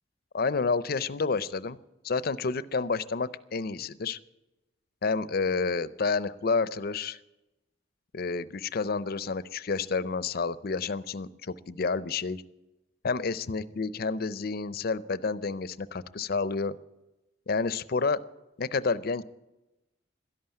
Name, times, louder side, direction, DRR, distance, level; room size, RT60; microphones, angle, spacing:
voice 1, 0.3-1.8 2.0-4.2 5.0-7.2 8.1-12.4 13.0-16.7 17.5-18.2 18.6-19.2, left 4 dB, 50° left, 17 dB, 0.5 m, -29 dB
12.5 x 11.5 x 9.0 m, 0.99 s
head